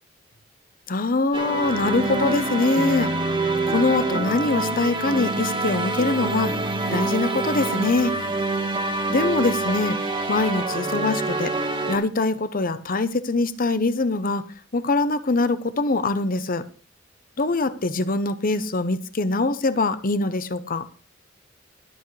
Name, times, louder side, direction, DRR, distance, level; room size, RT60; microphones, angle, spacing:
voice 1, 0.9-3.1 3.7-6.5 6.9-8.1 9.1-11.5 11.9-14.4 14.7-16.6 17.4-20.9, left 3 dB, 45° left, 0.9 m, -23 dB
sound 1, 1.3-12.0, right 2 dB, 25° right, 1.7 m, -26 dB
21.5 x 8.3 x 3.3 m
head